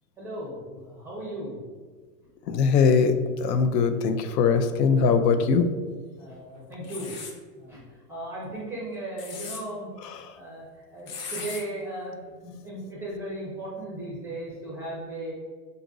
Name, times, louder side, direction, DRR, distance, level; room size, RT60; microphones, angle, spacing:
voice 1, 0.2-1.6 6.1-7.1 7.5-7.8 8.1-9.9 10.3-10.6 10.9-15.3, right 1 dB, 5° right, -5 dB, 0.4 m, -36 dB
voice 2, 2.5-5.8 10.0-10.4, left 5 dB, 85° left, 9 dB, 0.6 m, -22 dB
sound 1, 6.8-7.4 9.0-9.6 11.1-11.6, left 5 dB, 40° left, 0.6 m, -37 dB
3.9 x 2.5 x 3.8 m, 1.5 s
hypercardioid pair, 130°, 48 cm